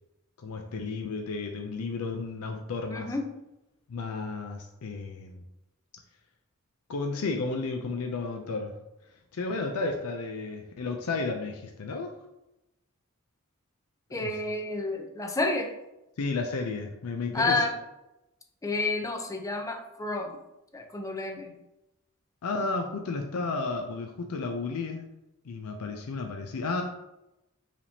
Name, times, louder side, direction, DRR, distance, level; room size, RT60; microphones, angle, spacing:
voice 1, 0.4-3.1 3.9-5.4 6.9-8.7 9.3-12.2 14.2-14.3 16.2-17.6 22.4-25.1 25.4-26.8, left 3 dB, 80° left, 4 dB, 0.5 m, -32 dB
voice 2, 2.9-3.3 14.1-15.7 17.3-17.8 18.6-20.4 20.7-21.5, left 2 dB, 15° left, 4 dB, 0.5 m, -30 dB
5.0 x 3.5 x 2.7 m, 0.91 s
head